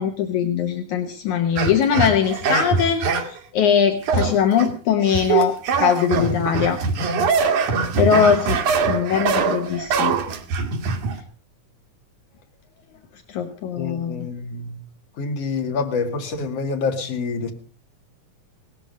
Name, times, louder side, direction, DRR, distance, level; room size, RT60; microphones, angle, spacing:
voice 1, 0.0-6.8 8.0-8.6 8.9-10.2 13.3-14.3, left 8 dB, 75° left, 2.6 m, -21 dB
sound 1, 1.6-3.4 4.0-4.7 5.0-11.2, right 5 dB, 75° right, 3.2 m, -22 dB
voice 2, 13.8-14.8 15.2-17.5, left 4 dB, 55° left, 3.0 m, -27 dB
18.0 x 13.5 x 5.3 m
omnidirectional pair, 3.6 m